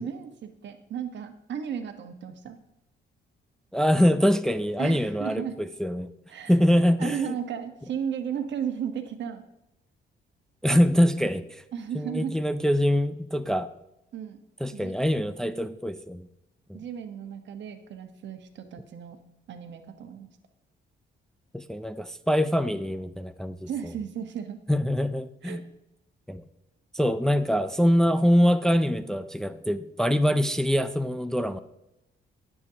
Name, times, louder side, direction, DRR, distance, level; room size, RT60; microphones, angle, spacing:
voice 1, 0.0-2.6 4.8-5.5 6.3-6.5 7.0-9.4 11.7-12.4 14.1-14.4 14.7-14.9 16.7-19.2 19.5-20.3 23.7-24.6 25.4-25.6, right 8 dB, 65° right, 7 dB, 1.2 m, -34 dB
voice 2, 3.7-6.1 6.5-7.3 10.6-11.6 11.9-13.7 14.6-16.3 16.7-16.8 21.5-23.9 24.7-25.6 26.3-26.4 26.9-31.6, equal, 5° left, 9 dB, 0.5 m, -24 dB
19.0 x 7.0 x 2.9 m, 0.88 s
cardioid pair, 90°, 20 cm